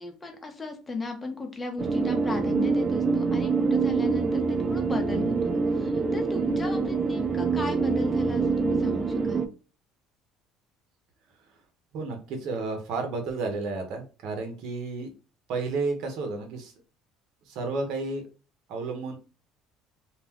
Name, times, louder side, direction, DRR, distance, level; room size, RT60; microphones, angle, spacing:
voice 1, 0.0-9.5, left 3 dB, 20° left, 4 dB, 0.8 m, -36 dB
sound 1, 1.8-9.5, right 4 dB, 30° right, 0.4 m, -25 dB
voice 2, 11.9-15.1 15.5-16.7 17.5-18.2 18.7-19.2, right 3 dB, 70° right, 4 dB, 0.8 m, -31 dB
2.4 x 2.2 x 3.5 m, 0.33 s
supercardioid pair, 105°, 0 cm